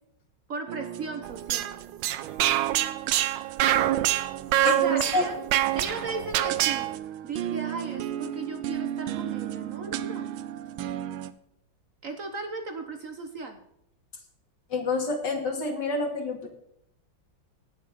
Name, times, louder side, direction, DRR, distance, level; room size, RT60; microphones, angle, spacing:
voice 1, 0.5-1.7 4.6-5.4 5.7-6.9 7.2-10.3 12.0-13.6, right 3 dB, 45° right, 5 dB, 1.3 m, -36 dB
sound 1, 0.7-11.3, right 11 dB, 90° right, 1.5 m, -36 dB
sound 2, 1.2-7.0, right 13 dB, 70° right, 1.2 m, -25 dB
voice 2, 4.6-5.3 14.7-16.5, left 3 dB, 55° left, 3 dB, 2.8 m, -28 dB
18.5 x 6.8 x 4.1 m, 0.78 s
omnidirectional pair, 2.2 m